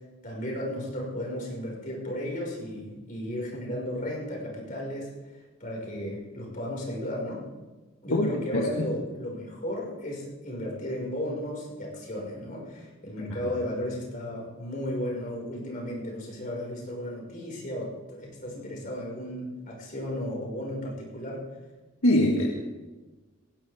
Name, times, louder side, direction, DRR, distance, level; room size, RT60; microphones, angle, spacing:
voice 1, 0.2-7.4 8.0-21.4, left 1 dB, 40° left, -2 dB, 5.6 m, -34 dB
voice 2, 8.1-8.8 13.4-13.5 22.0-22.6, left 1 dB, 80° left, 0 dB, 1.7 m, -24 dB
19.5 x 18.0 x 3.6 m, 1.2 s
head